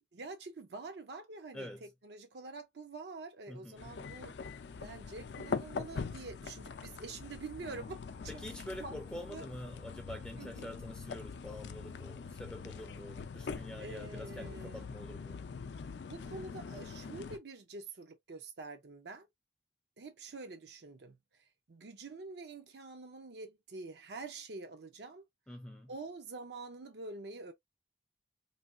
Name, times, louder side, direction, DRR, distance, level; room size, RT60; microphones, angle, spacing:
voice 1, 0.1-4.4 4.8-8.4 8.8-9.0 9.3-9.5 10.4-10.8 13.8-14.8 16.1-19.3 20.0-25.3 25.9-27.5, right 3 dB, 75° right, 0.5 m, -46 dB
voice 2, 1.5-1.9 3.5-4.0 8.3-15.4 25.5-25.9, left 1 dB, 5° left, 0.4 m, -46 dB
sound 1, 3.8-17.4, left 5 dB, 80° left, 0.4 m, -43 dB
3.3 x 2.3 x 2.4 m
head